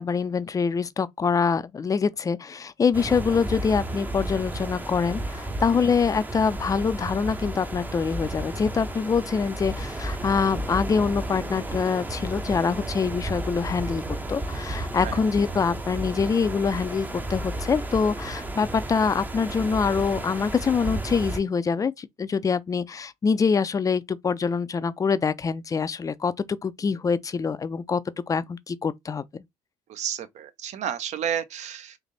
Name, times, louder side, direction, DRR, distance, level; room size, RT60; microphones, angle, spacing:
voice 1, 0.0-28.0 28.3-29.2, left 5 dB, 25° left, 0.4 m, -25 dB
sound 1, 2.9-21.4, right 1 dB, 15° right, 0.6 m, -33 dB
voice 2, 29.9-32.0, right 9 dB, 60° right, 0.7 m, -31 dB
3.3 x 2.6 x 3.8 m
cardioid pair, 100°, 13 cm